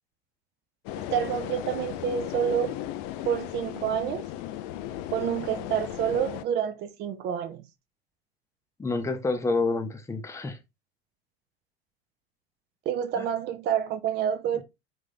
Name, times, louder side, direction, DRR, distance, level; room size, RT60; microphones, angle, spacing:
sound 1, 0.9-6.4, left 13 dB, 50° left, 0.4 m, -36 dB
voice 1, 1.0-2.8 3.3-4.3 5.1-7.6 12.9-14.6, right 9 dB, 35° right, 0.5 m, -28 dB
voice 2, 8.8-10.6 13.2-13.3, left 3 dB, 10° left, 0.6 m, -28 dB
3.9 x 2.6 x 3.4 m
figure-of-eight pair, 75°, 31 cm